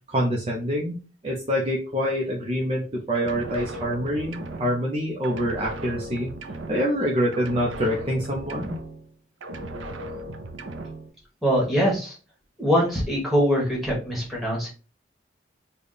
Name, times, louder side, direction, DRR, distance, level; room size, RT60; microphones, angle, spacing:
voice 1, 0.1-1.0 1.2-6.3 6.7-8.8, equal, 30° right, -2 dB, 0.5 m, -26 dB
sound 1, 3.1-5.0 5.2-7.1 7.3-9.1 9.4-11.1, right 1 dB, 85° right, 0.5 m, -37 dB
voice 2, 11.4-12.1 12.6-14.7, equal, ahead, -3 dB, 1.3 m, -23 dB
3.4 x 2.2 x 3.9 m, 0.34 s
head